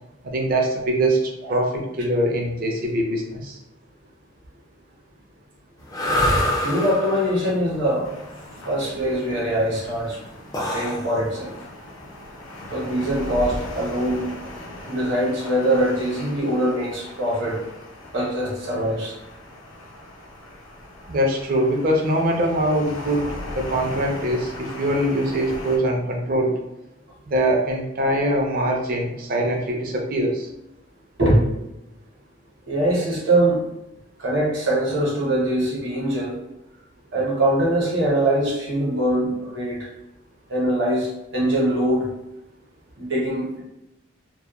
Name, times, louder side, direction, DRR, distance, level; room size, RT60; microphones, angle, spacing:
voice 1, 0.2-3.6 21.1-26.5 27.3-30.5, right 1 dB, 45° right, 0 dB, 0.5 m, -23 dB
sound 1, 5.8-13.9, left 1 dB, 20° left, 0.3 m, -27 dB
voice 2, 6.6-8.1 8.6-10.2 10.7-11.6 12.7-14.3 14.9-17.6 18.1-19.1 31.2-31.5 32.7-33.6 34.2-36.4 37.1-39.8 40.5-42.1 43.0-43.6, right 1 dB, 60° right, -4 dB, 0.9 m, -22 dB
sound 2, 8.0-25.8, left 1 dB, 80° left, 0.6 m, -38 dB
2.3 x 2.1 x 2.9 m, 0.90 s
head